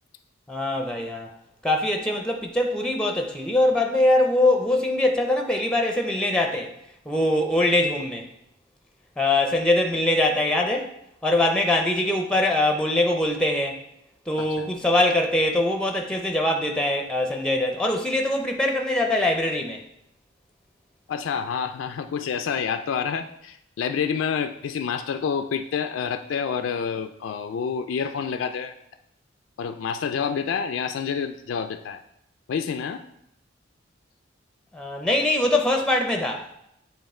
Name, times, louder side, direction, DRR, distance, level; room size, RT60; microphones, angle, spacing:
voice 1, 0.5-1.3 1.6-6.7 7.1-8.3 9.2-10.9 11.2-13.8 14.3-19.8 34.7-36.5, left 1 dB, 5° left, 3 dB, 0.5 m, -22 dB
voice 2, 14.4-14.7 21.1-28.7 29.6-32.0 32.5-33.0, left 6 dB, 80° left, 8 dB, 0.3 m, -28 dB
7.7 x 3.0 x 4.2 m, 0.79 s
head